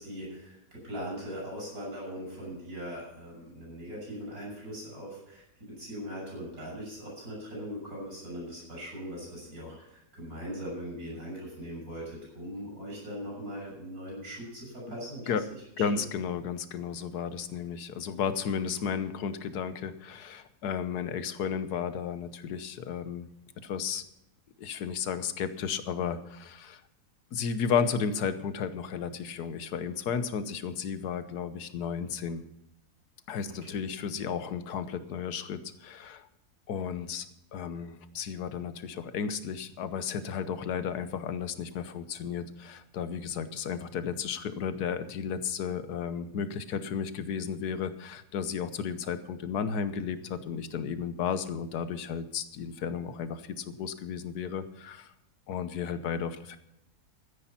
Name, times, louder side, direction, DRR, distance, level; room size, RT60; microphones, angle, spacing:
voice 1, 0.0-15.3 15.9-16.0, equal, 60° right, -4 dB, 7.3 m, -40 dB
voice 2, 15.8-23.3 23.6-24.0 24.6-26.8 27.3-32.4 33.3-36.3 36.7-37.3 37.5-55.1 55.5-56.6, left 7 dB, 75° left, 12 dB, 1.5 m, -33 dB
13.5 x 10.0 x 5.8 m, 0.84 s
omnidirectional pair, 1.7 m